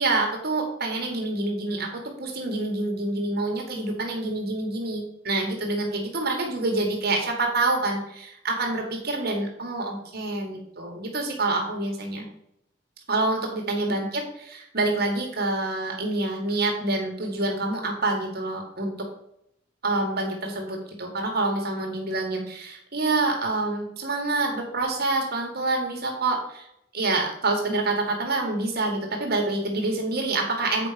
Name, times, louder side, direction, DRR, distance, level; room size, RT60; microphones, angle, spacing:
voice 1, 0.0-12.3 13.1-19.1 19.8-26.7 26.9-30.9, right 2 dB, 55° right, 1 dB, 1.7 m, -27 dB
8.3 x 4.9 x 5.1 m, 0.77 s
head